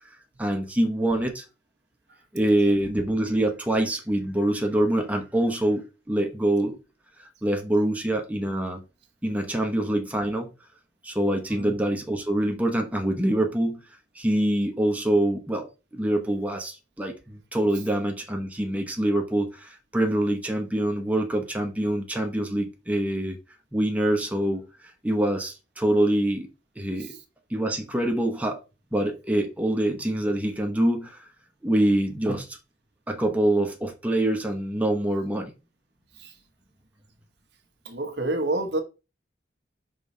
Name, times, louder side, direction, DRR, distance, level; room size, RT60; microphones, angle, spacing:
voice 1, 0.4-1.4 2.3-6.7 7.2-8.8 9.2-10.5 11.0-13.8 14.1-23.4 23.7-26.5 26.8-27.1 27.5-28.6 28.9-31.3 31.6-32.6 33.1-35.5, right 1 dB, 10° right, 0.9 m, -25 dB
voice 2, 37.8-38.8, right 2 dB, 70° right, 1.1 m, -29 dB
5.4 x 3.8 x 5.4 m
head